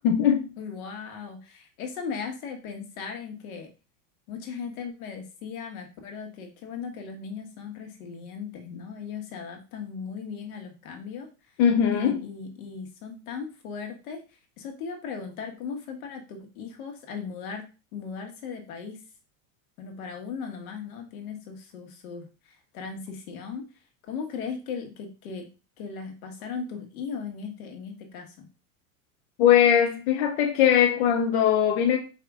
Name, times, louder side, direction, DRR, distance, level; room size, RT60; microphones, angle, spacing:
voice 1, 0.0-0.5 11.6-12.2 29.4-32.0, left 9 dB, 50° left, 0.6 m, -20 dB
voice 2, 0.6-3.7 4.3-11.3 11.9-14.2 14.6-17.7 17.9-19.0 19.8-23.6 24.0-25.5 25.8-28.5, left 6 dB, 75° left, 1.5 m, -37 dB
4.9 x 2.8 x 3.6 m
supercardioid pair, 175°, 43 cm